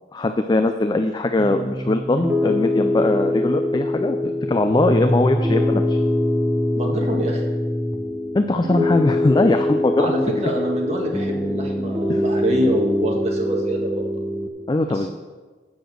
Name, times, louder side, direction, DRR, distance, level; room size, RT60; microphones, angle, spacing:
voice 1, 0.1-6.0 8.3-10.1 12.1-12.2 14.7-15.1, left 2 dB, 25° left, 7 dB, 0.4 m, -21 dB
Piano, 1.4-14.5, left 1 dB, 10° right, 0.8 m, -23 dB
voice 2, 6.7-7.4 10.0-14.1 14.9-15.1, equal, 35° right, 0 dB, 1.7 m, -25 dB
8.3 x 6.8 x 6.2 m, 1.4 s
head